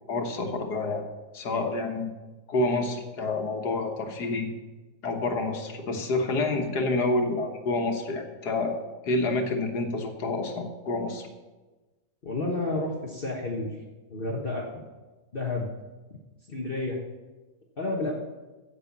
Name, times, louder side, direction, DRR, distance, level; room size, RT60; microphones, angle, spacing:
voice 1, 0.1-1.1 1.3-2.1 2.5-4.5 5.0-8.8 9.0-11.3, left 2 dB, 90° left, 4 dB, 1.9 m, -28 dB
voice 2, 12.2-13.8 14.1-14.9 15.3-15.7 16.5-17.0 17.8-18.1, left 2 dB, 40° left, -1 dB, 1.3 m, -30 dB
9.7 x 8.1 x 7.2 m, 1.2 s
omnidirectional pair, 1.7 m